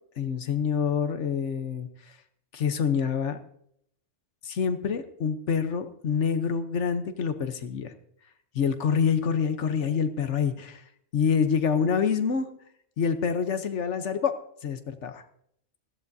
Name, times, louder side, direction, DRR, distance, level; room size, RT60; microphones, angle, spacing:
voice 1, 0.2-1.9 2.5-3.4 4.4-7.9 8.5-10.8 11.1-12.5 13.0-14.3 14.6-15.2, left 6 dB, 70° left, 10 dB, 1.2 m, -26 dB
18.5 x 14.5 x 2.7 m, 0.69 s
omnidirectional pair, 1.3 m